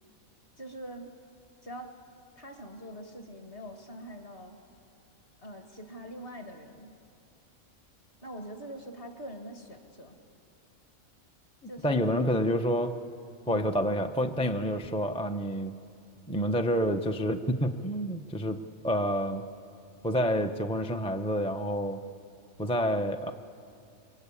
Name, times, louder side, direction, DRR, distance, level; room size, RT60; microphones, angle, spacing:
voice 1, 0.6-1.2 1.6-2.0 2.4-4.6 5.4-6.9 8.2-10.2 11.7-12.1 13.5-13.8, equal, 45° left, 4 dB, 2.4 m, -43 dB
voice 2, 11.6-13.0 13.5-15.8 16.3-19.5 20.0-22.0 22.6-23.3, equal, 5° left, 5 dB, 0.5 m, -28 dB
27.5 x 23.0 x 8.5 m, 2.5 s
omnidirectional pair, 1.4 m